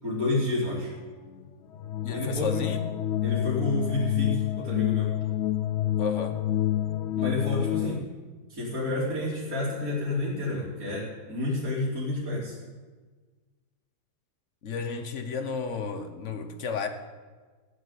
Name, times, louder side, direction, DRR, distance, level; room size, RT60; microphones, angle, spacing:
voice 1, 0.0-0.9 2.1-2.7 3.2-5.1 7.2-8.0 8.5-12.6, left 2 dB, 55° right, -9 dB, 3.8 m, -30 dB
sound 1, 0.6-8.0, left 13 dB, 75° left, 0.6 m, -28 dB
voice 2, 2.0-2.9 6.0-6.4 14.6-16.9, left 5 dB, 50° left, 8 dB, 1.3 m, -32 dB
15.0 x 7.6 x 8.3 m, 1.4 s
omnidirectional pair, 1.7 m